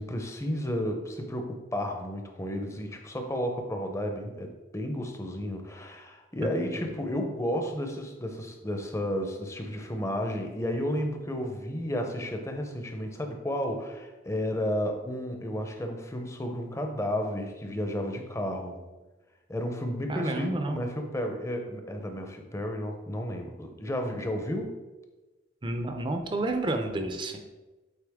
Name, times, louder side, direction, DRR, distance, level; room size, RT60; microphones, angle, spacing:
voice 1, 0.0-18.8 19.5-24.7, equal, 15° left, 4 dB, 0.6 m, -32 dB
voice 2, 20.1-20.8 25.6-27.4, right 2 dB, 25° right, 5 dB, 0.5 m, -30 dB
8.2 x 4.1 x 3.5 m, 1.2 s
head